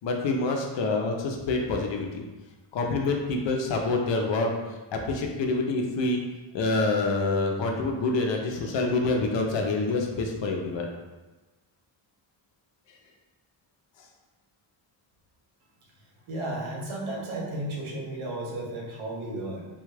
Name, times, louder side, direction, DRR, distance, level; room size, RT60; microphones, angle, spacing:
voice 1, 0.0-2.2 2.7-6.2 6.5-10.9 12.9-13.0 14.0-14.1, left 3 dB, 60° left, 1 dB, 0.6 m, -27 dB
voice 2, 16.3-19.7, right 1 dB, 75° right, -2 dB, 1.0 m, -33 dB
3.4 x 2.3 x 3.2 m, 1.2 s
wide cardioid pair, 175°, 50 cm